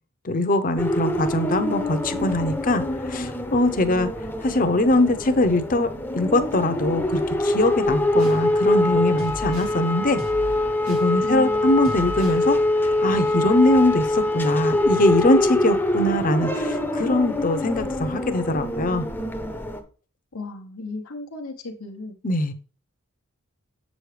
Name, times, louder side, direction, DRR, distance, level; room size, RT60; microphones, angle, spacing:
voice 1, 0.2-4.1 4.4-5.9 6.1-10.2 10.9-12.6 13.0-19.1 22.2-22.5, left 1 dB, 40° left, 9 dB, 0.7 m, -22 dB
sound 1, 0.8-19.8, left 1 dB, 10° left, 0.7 m, -24 dB
sound 2, 7.8-8.4 9.2-9.8 10.2-11.1 11.8-12.4, equal, 75° right, 3.2 m, -36 dB
voice 2, 11.2-11.8 20.3-22.1, left 2 dB, 90° left, 3 dB, 1.0 m, -35 dB
7.6 x 6.3 x 3.3 m, 0.36 s
head